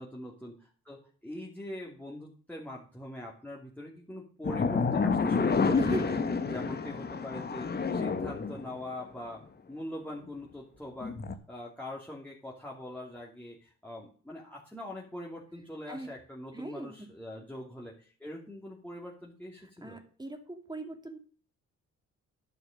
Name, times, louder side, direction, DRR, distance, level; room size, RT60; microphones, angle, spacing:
voice 1, 0.0-6.1 6.5-9.4 9.7-11.1 11.5-20.0, left 1 dB, 5° left, -3 dB, 2.9 m, -42 dB
sound 1, 4.4-8.9 11.0-11.3, left 4 dB, 35° left, 1.4 m, -29 dB
voice 2, 5.7-6.2 15.9-16.1 16.5-17.1 19.8-21.2, right 2 dB, 15° right, 5 dB, 2.6 m, -39 dB
11.0 x 6.6 x 6.6 m, 0.42 s
cardioid pair, 90°, 30 cm